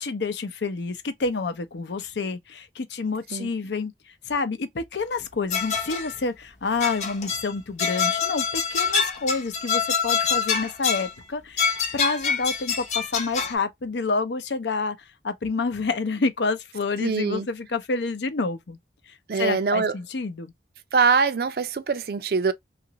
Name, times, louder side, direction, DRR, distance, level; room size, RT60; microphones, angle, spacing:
voice 1, 0.0-3.9 4.3-15.0 15.2-18.8 19.1-20.5, left 4 dB, 85° left, 0.6 m, -28 dB
sound 1, 5.5-6.2 6.8-7.5 7.8-11.1 11.6-13.5, left 6 dB, 40° left, 0.7 m, -25 dB
voice 2, 17.0-17.5 19.3-19.9 20.9-22.5, right 5 dB, 60° right, 0.4 m, -23 dB
3.0 x 2.5 x 2.8 m
head